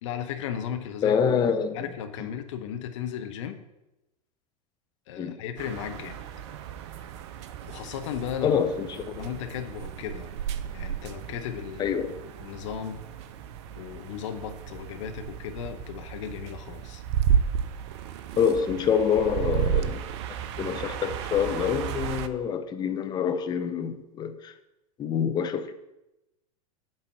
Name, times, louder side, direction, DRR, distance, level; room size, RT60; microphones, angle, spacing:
voice 1, 0.0-1.3 1.7-3.6 5.1-6.2 7.7-8.6 9.0-10.3 10.7-13.0 13.7-17.0, left 9 dB, 50° left, 0.8 m, -36 dB
voice 2, 1.0-1.9 5.2-5.4 8.4-9.3 11.8-12.1 18.4-20.0 20.6-24.5 25.0-25.7, left 7 dB, 20° left, 0.7 m, -26 dB
sound 1, 5.6-22.3, right 8 dB, 45° right, 0.5 m, -33 dB
8.7 x 4.1 x 6.9 m
figure-of-eight pair, 90°, 20 cm